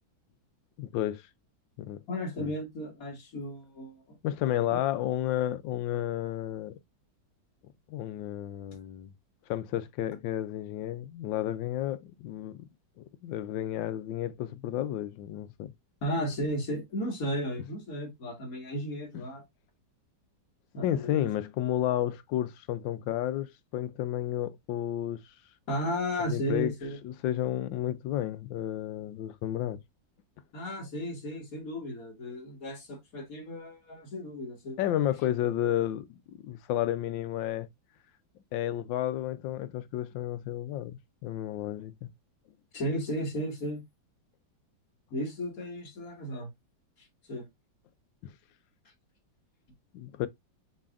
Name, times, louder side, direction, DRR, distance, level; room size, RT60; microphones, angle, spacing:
voice 1, 0.8-1.2 1.8-2.0 2.4-2.5 4.2-6.7 7.9-9.1 9.5-12.7 13.0-15.7 20.8-25.2 26.3-26.7 27.0-29.8 34.8-36.1 36.4-37.7 38.5-42.1 48.2-48.3 49.9-50.3, left 12 dB, 80° left, 1.3 m, -31 dB
voice 2, 2.1-4.0 16.0-19.4 20.7-21.3 25.7-27.0 30.5-34.8 42.7-43.8 45.1-46.5 47.3-47.5, equal, 50° left, 2.1 m, -34 dB
6.6 x 3.1 x 2.4 m
omnidirectional pair, 2.1 m